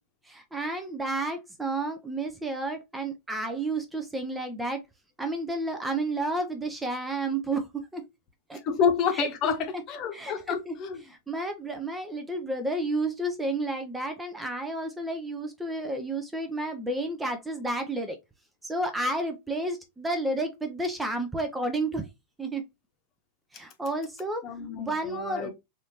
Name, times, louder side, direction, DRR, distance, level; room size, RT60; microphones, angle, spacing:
voice 1, 0.2-4.8 5.2-8.1 8.5-8.6 9.1-9.3 10.1-10.8 11.1-18.2 18.6-22.1 22.4-22.6 23.5-24.4 24.8-25.5, right 2 dB, 10° right, 0.5 m, -31 dB
voice 2, 8.6-11.0 24.4-25.5, left 6 dB, 35° left, 0.9 m, -28 dB
4.1 x 2.6 x 2.8 m
figure-of-eight pair, 90°, 0 cm